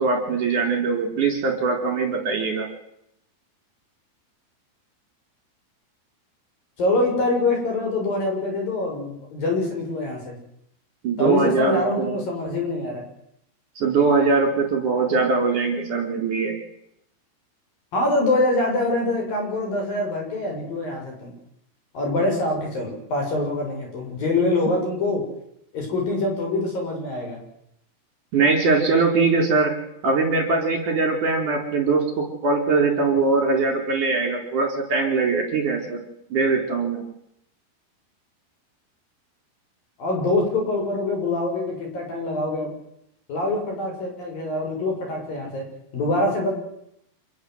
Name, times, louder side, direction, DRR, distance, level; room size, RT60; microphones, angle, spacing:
voice 1, 0.0-2.7 11.0-12.2 13.8-16.6 28.3-29.7 30.0-36.0 36.3-37.0, right 4 dB, 40° right, 4 dB, 5.2 m, -21 dB
voice 2, 6.8-10.4 11.2-13.1 17.9-21.3 21.9-25.2 25.7-27.4 40.0-42.7 43.3-45.6 45.9-46.5, left 2 dB, 45° left, 1 dB, 8.2 m, -24 dB
27.0 x 21.5 x 8.1 m, 0.75 s
omnidirectional pair, 6.0 m